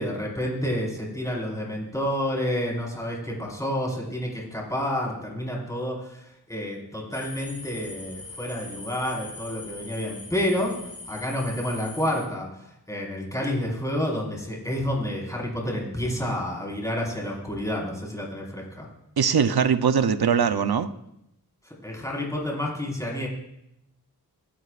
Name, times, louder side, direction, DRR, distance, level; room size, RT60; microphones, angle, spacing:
voice 1, 0.0-18.9 21.6-23.3, left 1 dB, 10° left, -3 dB, 5.1 m, -29 dB
sound 1, 7.1-12.3, left 3 dB, 35° left, 5.5 m, -42 dB
voice 2, 19.2-20.9, right 6 dB, 70° right, 9 dB, 0.9 m, -21 dB
26.5 x 12.5 x 2.6 m, 0.82 s
wide cardioid pair, 70°, 39 cm